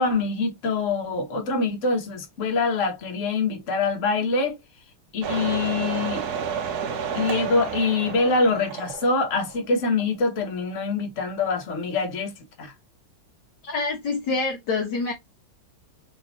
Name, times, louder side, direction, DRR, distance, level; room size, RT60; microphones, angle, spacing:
voice 1, 0.0-4.6 5.1-6.2 7.1-12.3 12.6-12.7, left 3 dB, 40° left, 1.3 m, -24 dB
sound 1, 5.2-9.7 10.0-10.1, right 7 dB, 60° right, 1.1 m, -31 dB
voice 2, 13.6-15.1, left 3 dB, 60° left, 1.4 m, -26 dB
3.9 x 3.6 x 2.7 m
omnidirectional pair, 2.3 m